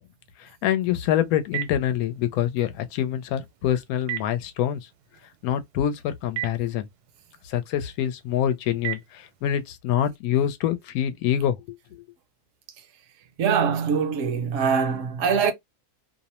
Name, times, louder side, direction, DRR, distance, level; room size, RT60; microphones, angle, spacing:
voice 1, 0.4-4.8 5.4-6.9 7.4-12.0, left 10 dB, 75° left, 1.0 m, -26 dB
Telephone, 0.8-9.7, right 14 dB, 85° right, 1.1 m, -40 dB
voice 2, 13.4-15.5, right 6 dB, 65° right, 0.8 m, -23 dB
2.6 x 2.0 x 2.8 m
omnidirectional pair, 1.6 m